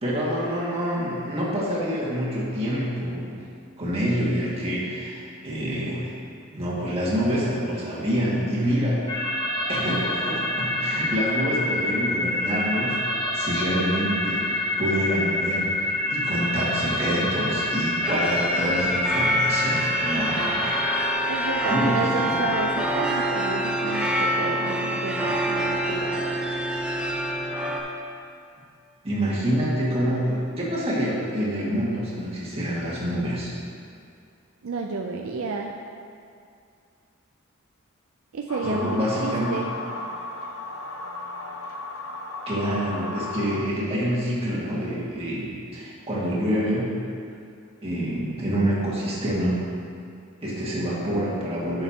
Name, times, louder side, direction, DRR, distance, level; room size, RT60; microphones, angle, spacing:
voice 1, 0.0-3.4 3.8-6.1 6.5-9.3 9.7-12.9 13.3-20.7 21.1-22.5 29.0-33.5 38.6-39.6 42.5-45.5 45.7-46.9 47.8-49.6 50.4-51.8, equal, 30° right, -7 dB, 1.9 m, -27 dB
sound 1, 9.1-21.1, left 1 dB, 20° left, 1.0 m, -27 dB
sound 2, 18.0-27.8, equal, 5° right, 0.7 m, -26 dB
voice 2, 21.3-26.4 34.6-35.7 38.3-39.7, right 4 dB, 65° right, 1 dB, 0.4 m, -31 dB
sound 3, 38.5-43.6, left 2 dB, 70° left, 0.8 m, -34 dB
11.0 x 6.8 x 2.8 m, 2.4 s
head